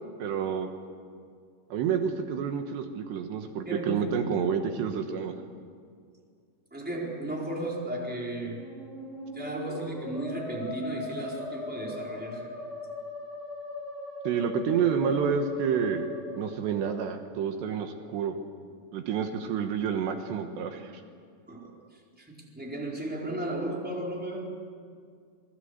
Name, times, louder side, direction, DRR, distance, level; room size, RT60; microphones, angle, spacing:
voice 1, 0.2-0.7 1.7-5.3 14.3-16.1 16.4-18.4 18.9-21.0, right 7 dB, 75° right, 6 dB, 3.4 m, -29 dB
voice 2, 3.6-4.2 6.7-8.7 9.3-12.5 21.5-24.7, right 1 dB, ahead, -2 dB, 3.9 m, -35 dB
Musical instrument, 8.4-17.1, left 2 dB, 35° left, 7.5 m, -39 dB
28.0 x 21.5 x 8.1 m, 2.1 s
omnidirectional pair, 5.1 m